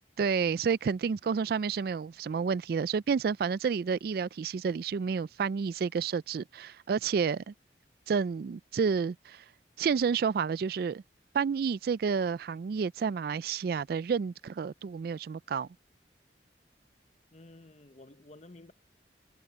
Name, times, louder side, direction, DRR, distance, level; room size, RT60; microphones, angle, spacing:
voice 1, 0.2-7.5 8.1-9.4 9.8-11.0 11.3-15.7, right 6 dB, 55° right, 0.3 m, -30 dB
voice 2, 17.3-18.7, left 2 dB, 40° left, 0.9 m, -52 dB
head